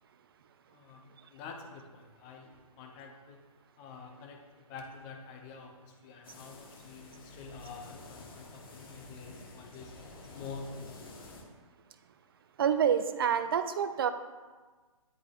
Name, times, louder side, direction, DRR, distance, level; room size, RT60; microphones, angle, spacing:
voice 1, 0.7-3.4 3.8-9.9 10.3-11.0, left 4 dB, 20° left, 3 dB, 0.6 m, -47 dB
sound 1, 6.2-11.4, left 2 dB, 40° left, 1.0 m, -50 dB
voice 2, 12.6-14.1, right 8 dB, 40° right, 11 dB, 0.4 m, -27 dB
9.8 x 4.7 x 2.5 m, 1.3 s
figure-of-eight pair, 130°, 18 cm